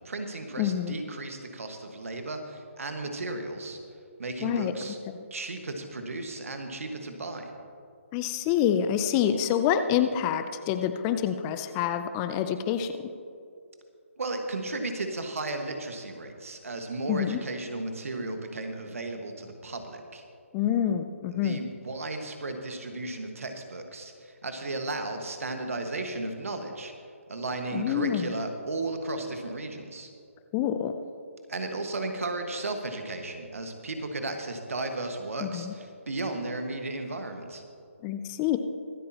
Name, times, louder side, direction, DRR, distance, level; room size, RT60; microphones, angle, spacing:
voice 1, 0.0-3.8 4.2-5.0 5.3-7.5 14.2-20.2 21.3-26.9 27.3-30.1 31.5-37.6, right 2 dB, 75° right, 5 dB, 1.6 m, -34 dB
voice 2, 0.6-0.9 4.4-4.7 5.1-5.2 8.1-13.0 17.1-17.4 20.5-21.6 27.7-28.3 30.5-30.9 35.4-35.7 38.0-38.6, left 9 dB, 20° left, 9 dB, 0.5 m, -27 dB
24.0 x 8.6 x 3.0 m, 2.4 s
figure-of-eight pair, 150°, 8 cm